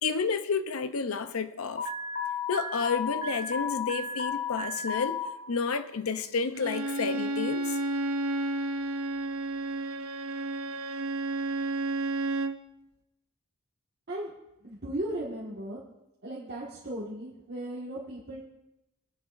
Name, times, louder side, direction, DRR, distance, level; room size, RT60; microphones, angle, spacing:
voice 1, 0.0-1.9 2.5-5.2 5.5-7.8, left 5 dB, 85° left, 0.7 m, -30 dB
Alarm, 1.8-5.3, left 5 dB, 40° left, 1.6 m, -33 dB
Bowed string instrument, 6.5-12.6, right 2 dB, 80° right, 0.7 m, -31 dB
voice 2, 14.6-15.8 16.2-18.4, right 1 dB, 50° right, 1.8 m, -36 dB
20.5 x 10.5 x 2.6 m
head